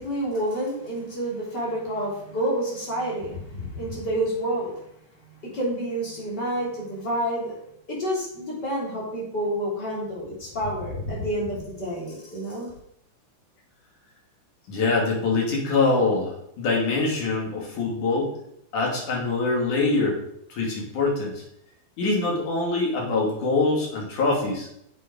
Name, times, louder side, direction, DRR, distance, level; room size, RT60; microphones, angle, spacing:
voice 1, 0.0-4.8 5.4-7.6 7.9-12.7, right 1 dB, 30° left, -4 dB, 4.1 m, -29 dB
voice 2, 14.7-18.3 18.7-20.2 20.5-21.4 22.0-24.7, left 3 dB, 80° left, -2 dB, 4.1 m, -24 dB
8.4 x 7.8 x 5.2 m, 0.74 s
omnidirectional pair, 3.5 m